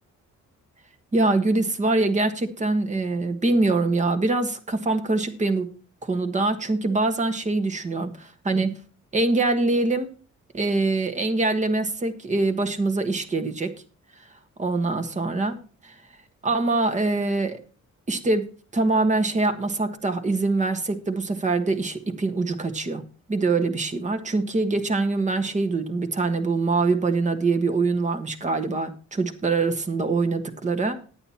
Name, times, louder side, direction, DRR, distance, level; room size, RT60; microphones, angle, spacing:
voice 1, 1.1-5.7 6.0-8.8 9.1-10.1 10.5-13.8 14.6-15.6 15.8-15.9 16.4-17.6 18.1-23.0 23.3-31.0, right 3 dB, 25° right, 6 dB, 1.4 m, -24 dB
11.0 x 8.9 x 4.3 m, 0.38 s
cardioid pair, 150°, 30 cm